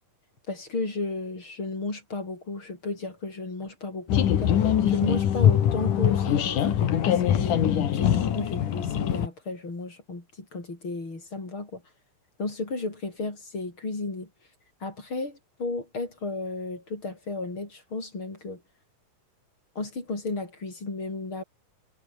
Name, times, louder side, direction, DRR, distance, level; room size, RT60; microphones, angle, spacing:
voice 1, 0.5-11.8 12.4-14.3 14.8-18.6 19.8-21.4, left 3 dB, 35° left, 6.5 m, -34 dB
sound 1, 4.1-9.3, left 10 dB, 70° left, 3.4 m, -23 dB
omnidirectional pair, 3.9 m